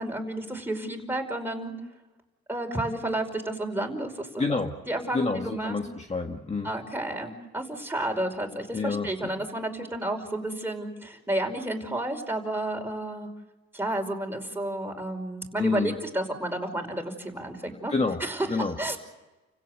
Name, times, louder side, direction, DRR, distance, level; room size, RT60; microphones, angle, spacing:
voice 1, 0.0-1.7 2.5-4.6 4.9-5.8 6.6-13.3 13.7-17.9 18.2-19.0, right 1 dB, 5° right, 3 dB, 5.3 m, -31 dB
voice 2, 4.4-4.7 5.1-6.7 8.7-9.1 15.6-16.0 17.9-18.2 18.5-18.8, left 4 dB, 20° left, 4 dB, 1.7 m, -28 dB
30.0 x 16.5 x 8.0 m, 1.1 s
cardioid pair, 90°, 30 cm